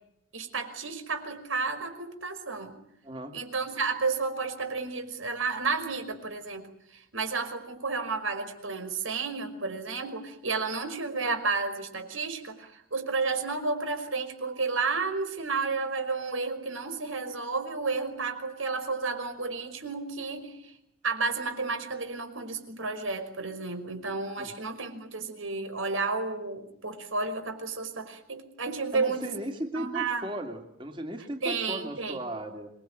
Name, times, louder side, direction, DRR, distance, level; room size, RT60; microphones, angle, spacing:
voice 1, 0.3-2.8 3.3-6.7 6.9-20.7 21.0-29.3 29.7-30.3 31.4-32.2, right 4 dB, 85° right, 7 dB, 5.5 m, -32 dB
voice 2, 3.0-3.4 24.4-24.5 28.9-32.7, right 1 dB, 25° right, 4 dB, 2.7 m, -36 dB
27.0 x 22.5 x 9.1 m, 0.76 s
head